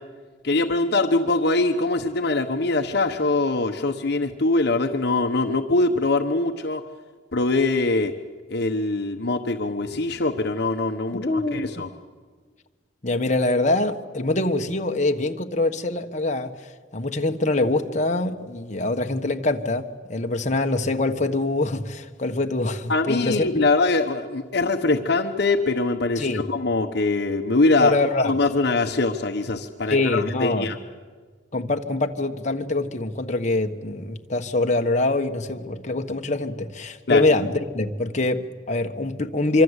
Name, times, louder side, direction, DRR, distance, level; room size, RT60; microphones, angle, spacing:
voice 1, 0.4-6.8 7.3-8.1 8.5-11.9 22.9-28.0 28.2-30.8 37.1-37.3, left 2 dB, 60° left, 6 dB, 1.0 m, -23 dB
voice 2, 11.1-11.8 13.0-16.5 16.9-23.5 26.2-26.4 27.8-28.3 29.9-30.7 31.5-39.6, left 2 dB, 40° left, 4 dB, 1.3 m, -24 dB
25.5 x 24.5 x 8.2 m, 1.5 s
head